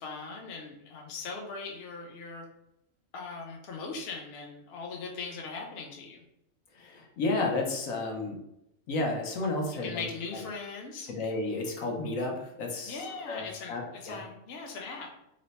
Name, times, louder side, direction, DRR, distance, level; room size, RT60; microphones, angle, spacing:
voice 1, 0.0-2.4 3.1-6.2 9.8-11.1 12.8-15.1, left 4 dB, 55° left, 1 dB, 0.7 m, -40 dB
voice 2, 6.7-8.4 8.9-10.1 11.1-14.2, left 2 dB, 80° left, 1 dB, 1.1 m, -32 dB
3.1 x 2.1 x 4.0 m, 0.81 s
omnidirectional pair, 1.4 m